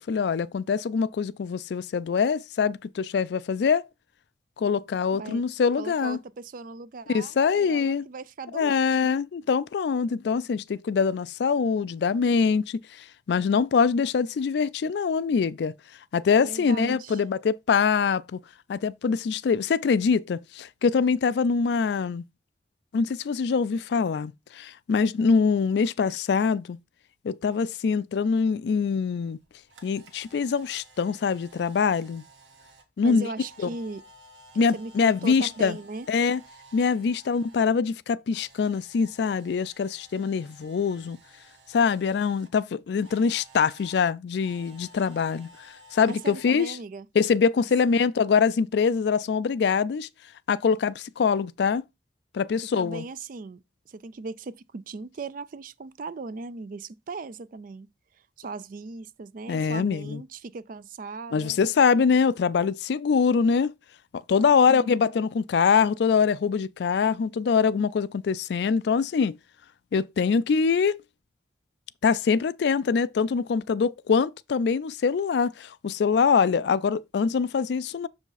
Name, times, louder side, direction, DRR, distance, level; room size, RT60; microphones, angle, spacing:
voice 1, 0.0-3.8 4.6-6.2 7.1-8.1 8.5-15.7 16.1-18.4 18.7-22.2 22.9-26.8 27.2-29.4 29.8-32.2 33.0-33.3 33.6-33.7 34.6-35.8 36.1-36.4 36.7-41.2 41.7-46.8 47.1-50.1 50.5-51.8 52.3-53.0 59.5-60.2 61.3-63.7 64.1-69.4 69.9-71.0 72.0-78.1, left 5 dB, 65° left, 0.3 m, -24 dB
voice 2, 5.8-9.2 16.4-17.2 33.0-34.0 34.7-36.1 46.1-47.1 52.7-57.9 58.4-61.6 64.5-64.9, right 3 dB, 50° right, 0.4 m, -38 dB
Camera, 29.3-37.7 38.0-42.5 43.0-46.5, right 1 dB, 85° right, 1.5 m, -54 dB
6.6 x 4.9 x 4.0 m
head